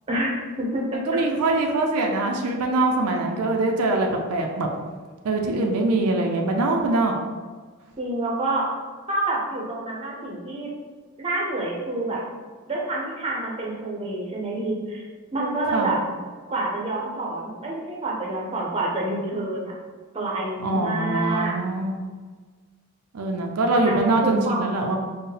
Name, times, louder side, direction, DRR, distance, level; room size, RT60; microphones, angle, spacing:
voice 1, 0.1-1.2 8.0-8.7 9.1-10.7 11.2-12.2 12.7-15.0 15.3-16.0 16.5-19.7 20.1-21.6 23.8-24.7, right 2 dB, 25° right, -3 dB, 0.6 m, -27 dB
voice 2, 0.9-4.7 5.2-7.2 15.7-15.9 20.6-22.0 23.1-25.0, right 2 dB, 85° right, 2 dB, 0.5 m, -23 dB
4.5 x 2.1 x 3.2 m, 1.5 s
head